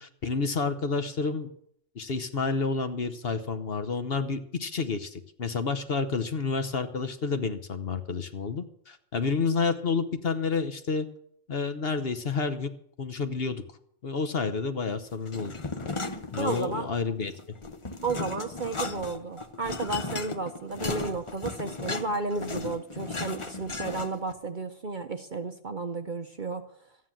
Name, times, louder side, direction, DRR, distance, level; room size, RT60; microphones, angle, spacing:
voice 1, 0.0-1.5 1.9-11.1 11.5-12.7 13.0-13.6 14.0-15.5 16.3-17.3, left 4 dB, 50° left, 9 dB, 1.1 m, -29 dB
sound 1, 15.3-17.0 17.3-24.3, left 3 dB, 25° left, 0.8 m, -36 dB
voice 2, 16.4-16.9 18.0-26.6, right 3 dB, 45° right, 7 dB, 0.8 m, -33 dB
13.5 x 9.5 x 7.5 m, 0.68 s
omnidirectional pair, 1.4 m